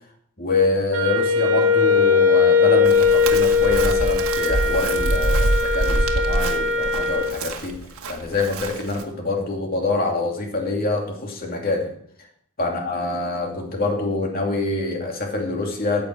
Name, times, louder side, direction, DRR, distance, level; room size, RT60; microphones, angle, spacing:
voice 1, 0.4-7.8 8.1-11.9 12.6-16.0, left 3 dB, 40° left, 1 dB, 2.6 m, -25 dB
Wind instrument woodwind instrument, 0.9-7.4, left 4 dB, 65° right, 1.9 m, -19 dB
Chirp tweet, 2.8-9.0, right 2 dB, 80° right, 1.5 m, -25 dB
14.5 x 8.5 x 4.6 m, 0.64 s
head